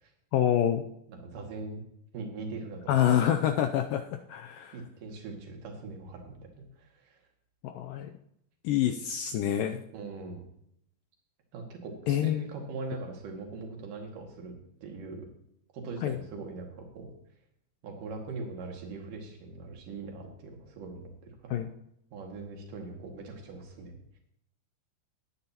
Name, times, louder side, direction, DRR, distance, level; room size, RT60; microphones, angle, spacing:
voice 1, 0.3-0.8 2.9-4.8 7.6-8.1 8.6-9.8 12.1-12.4 16.0-16.2 21.5-21.7, left 10 dB, 80° left, 6 dB, 2.0 m, -27 dB
voice 2, 1.1-1.8 2.1-2.9 4.7-7.2 9.9-10.4 11.5-14.5 14.8-15.3 15.7-17.1 17.8-21.1 21.4-21.7 22.1-23.9, right 3 dB, 60° right, 1 dB, 3.6 m, -41 dB
19.5 x 9.4 x 2.9 m, 0.74 s
omnidirectional pair, 4.4 m